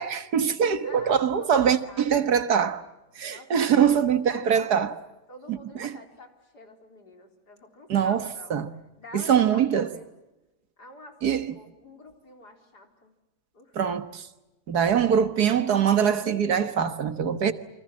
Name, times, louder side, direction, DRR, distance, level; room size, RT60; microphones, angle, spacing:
voice 1, 0.0-2.8 3.2-4.9 5.5-6.0 7.9-8.7 9.1-9.9 11.2-11.5 13.7-14.3 14.7-17.5, right 8 dB, 70° right, 1.9 m, -23 dB
voice 2, 0.8-2.2 3.3-4.9 5.3-8.6 9.0-10.1 10.8-13.1 13.5-13.8, left 2 dB, 70° left, 4.6 m, -47 dB
28.5 x 26.0 x 7.4 m
omnidirectional pair, 1.8 m